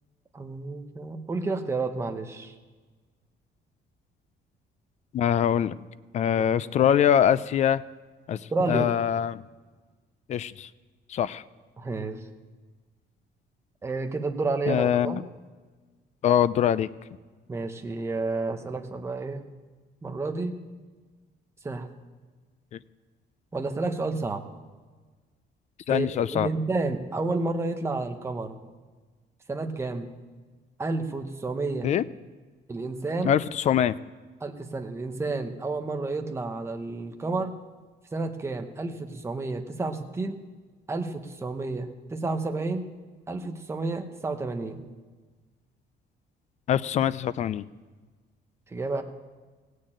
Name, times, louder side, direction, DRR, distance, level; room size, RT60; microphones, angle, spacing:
voice 1, 0.3-2.5 6.4-6.5 6.8-6.9 8.5-8.9 11.8-12.2 13.8-15.3 17.5-19.4 20.0-20.6 21.6-21.9 23.5-24.4 25.9-28.6 29.5-30.1 30.8-31.9 32.7-33.4 34.4-37.6 38.1-40.4 40.9-42.9 43.3-44.9 48.7-49.0, right 3 dB, 15° right, 5 dB, 0.9 m, -30 dB
voice 2, 5.1-5.7 6.1-7.8 8.3-8.4 8.7-9.4 10.3-10.7 11.1-11.4 14.7-15.2 16.2-16.9 22.7-22.8 25.9-26.5 31.8-32.0 33.2-34.0 46.7-47.6, left 9 dB, 40° left, 17 dB, 0.4 m, -23 dB
17.0 x 6.5 x 8.7 m, 1.4 s
cardioid pair, 170°, 19 cm